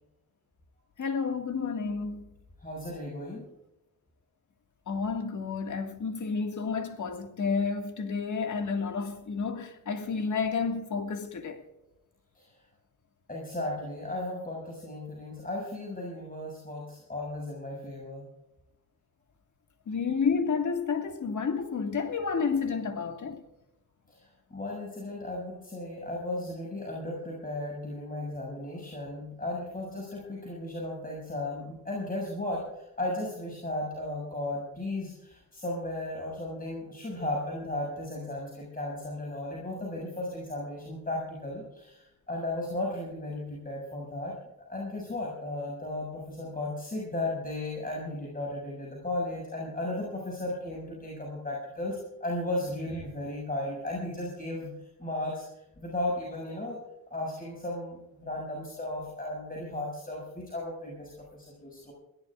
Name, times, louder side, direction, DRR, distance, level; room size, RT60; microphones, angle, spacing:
voice 1, 1.0-2.3 4.9-11.7 19.9-23.4, left 5 dB, 55° left, 2.0 m, -30 dB
voice 2, 2.6-3.4 12.3-12.5 13.3-18.2 24.1-44.3 44.7-55.4 55.8-56.8 57.1-61.9, left 1 dB, 25° left, 6.5 m, -35 dB
23.5 x 17.0 x 2.5 m
cardioid pair, 75°, 35 cm